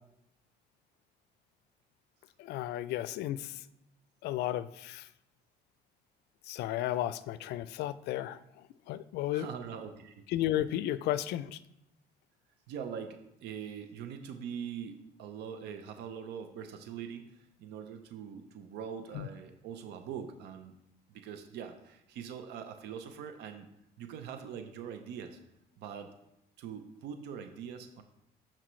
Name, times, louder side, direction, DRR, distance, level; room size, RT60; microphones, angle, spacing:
voice 1, 2.4-3.6 4.2-5.1 6.5-8.4 8.9-9.5 10.3-11.6 19.1-19.3, left 13 dB, 75° left, 16 dB, 0.4 m, -33 dB
voice 2, 9.3-10.2 12.7-20.7 21.1-23.7 24.0-25.4 25.8-26.1 26.6-28.0, right 7 dB, 80° right, 7 dB, 0.7 m, -43 dB
11.0 x 4.4 x 3.1 m, 0.82 s
cardioid pair, 110°, 17 cm